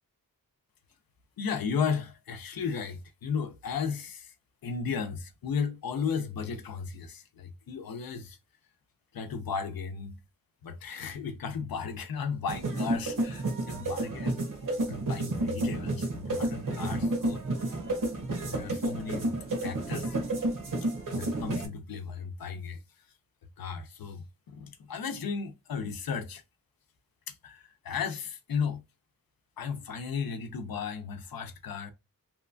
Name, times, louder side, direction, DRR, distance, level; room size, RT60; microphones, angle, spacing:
voice 1, 1.4-4.3 4.6-8.4 9.1-10.2 10.6-14.4 14.9-17.8 18.5-19.3 19.6-20.2 20.8-22.8 23.6-26.4 27.3-28.8 29.6-31.9, left 6 dB, 90° left, 0.6 m, -35 dB
sound 1, 12.5-21.7, right 2 dB, 65° right, 0.9 m, -31 dB
2.8 x 2.2 x 2.5 m
wide cardioid pair, 85°, 34 cm